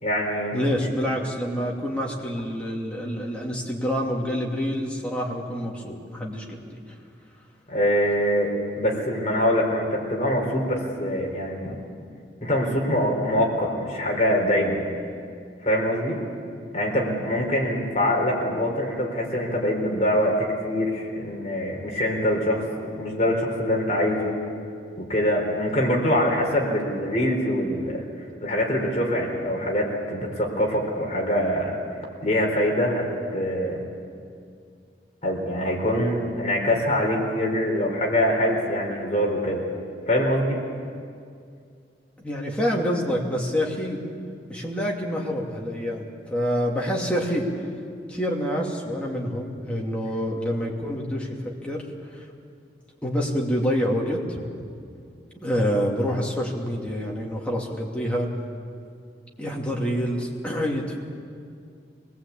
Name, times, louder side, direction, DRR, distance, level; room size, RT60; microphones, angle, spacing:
voice 1, 0.0-0.6 7.7-11.8 12.4-14.8 15.6-16.2 16.7-22.6 23.0-24.4 25.0-28.0 28.4-31.8 32.2-33.8 35.2-39.6 40.1-40.6, equal, 40° left, -1 dB, 4.1 m, -24 dB
voice 2, 0.5-6.8 42.2-44.0 44.5-47.5 48.1-52.2 53.0-54.4 55.4-58.3 59.4-61.0, equal, 5° left, -2 dB, 2.7 m, -27 dB
24.0 x 19.0 x 8.5 m, 2.3 s
head